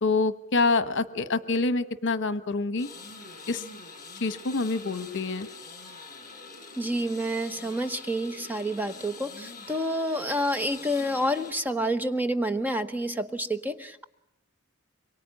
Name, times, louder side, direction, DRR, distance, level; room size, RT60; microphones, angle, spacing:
voice 1, 0.0-2.9 3.5-3.6 4.2-5.5, left 3 dB, 60° left, 12 dB, 1.2 m, -26 dB
sound 1, 2.8-11.5, left 4 dB, 40° left, 6.9 m, -45 dB
voice 2, 6.8-14.0, equal, 10° right, 9 dB, 1.0 m, -28 dB
25.0 x 23.5 x 9.7 m, 0.83 s
head